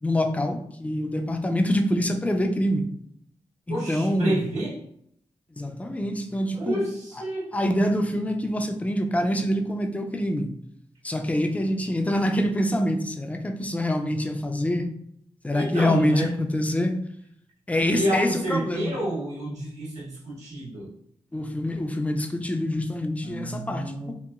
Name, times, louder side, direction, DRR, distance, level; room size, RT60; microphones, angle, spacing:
voice 1, 0.0-2.9 3.7-4.4 5.6-6.8 7.2-7.3 7.5-10.6 11.0-14.9 15.4-17.0 17.7-19.0 21.3-24.1, left 1 dB, 10° left, 5 dB, 0.4 m, -25 dB
voice 2, 3.7-4.8 6.5-7.5 15.5-16.3 17.8-20.9 23.2-24.1, right 1 dB, 85° right, -8 dB, 1.3 m, -29 dB
2.8 x 2.2 x 2.3 m, 0.70 s
cardioid pair, 60°, 11 cm